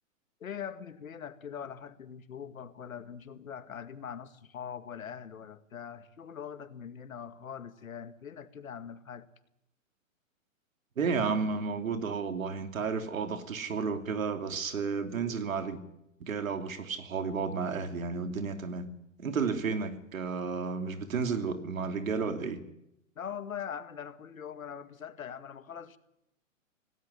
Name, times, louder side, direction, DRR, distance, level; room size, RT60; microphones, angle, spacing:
voice 1, 0.4-9.3 23.2-26.0, left 8 dB, 85° left, 12 dB, 2.1 m, -42 dB
voice 2, 11.0-15.8 16.2-18.9 19.2-22.6, right 5 dB, 80° right, 8 dB, 3.0 m, -32 dB
18.0 x 17.5 x 9.9 m, 0.82 s
hypercardioid pair, 155°, 40 cm